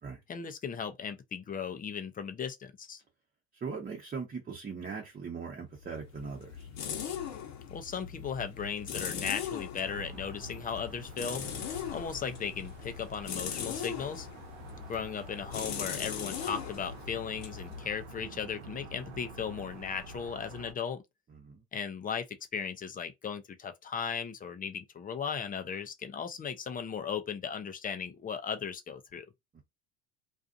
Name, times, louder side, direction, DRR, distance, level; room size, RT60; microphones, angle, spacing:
voice 1, 0.3-3.0 7.7-11.4 11.9-14.3 14.9-21.0 21.7-22.3 22.5-29.2, left 6 dB, 25° left, 0.6 m, -37 dB
voice 2, 3.5-6.7 14.6-14.9 21.3-21.6 29.5-29.6, right 5 dB, 25° right, 1.0 m, -40 dB
sound 1, 5.8-18.5, left 8 dB, 50° left, 1.0 m, -40 dB
sound 2, 9.8-20.7, right 1 dB, 90° right, 0.7 m, -48 dB
2.6 x 2.4 x 2.5 m
hypercardioid pair, 80°, 34 cm